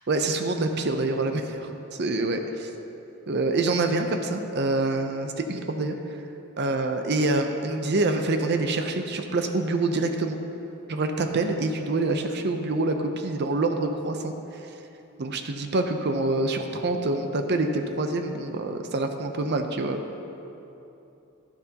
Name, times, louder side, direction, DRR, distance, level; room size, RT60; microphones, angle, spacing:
voice 1, 0.1-2.7 3.3-5.9 6.6-10.4 10.9-14.3 15.2-20.0, right 2 dB, 55° right, 6 dB, 0.6 m, -26 dB
11.5 x 10.5 x 2.9 m, 3.0 s
head